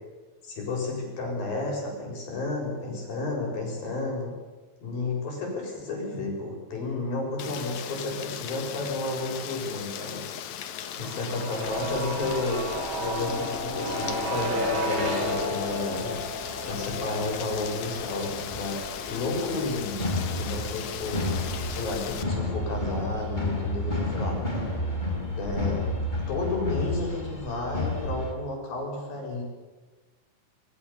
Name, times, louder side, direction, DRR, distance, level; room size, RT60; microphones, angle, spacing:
voice 1, 0.4-4.4 4.8-10.2 11.0-16.2 16.6-18.8 19.1-20.1 20.4-24.4 25.2-25.9 26.3-29.4, left 3 dB, 85° left, 0 dB, 8.6 m, -32 dB
Rain, 7.4-22.2, left 9 dB, 60° left, 2.4 m, -38 dB
sound 1, 11.0-22.9 23.1-23.2, equal, 55° right, 7.0 m, -33 dB
sound 2, 11.6-28.3, left 1 dB, 10° left, 3.9 m, -33 dB
24.0 x 22.0 x 7.2 m, 1.2 s
omnidirectional pair, 4.0 m